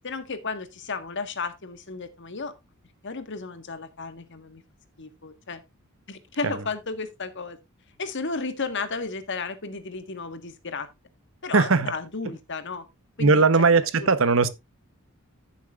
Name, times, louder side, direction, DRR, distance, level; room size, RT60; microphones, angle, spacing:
voice 1, 0.0-2.5 3.0-4.6 5.0-5.6 6.1-7.6 8.0-10.9 11.4-12.9 13.2-14.1, left 4 dB, 60° left, 1.5 m, -33 dB
voice 2, 11.5-11.9 13.2-14.5, right 4 dB, 70° right, 1.0 m, -19 dB
14.0 x 7.3 x 2.4 m
head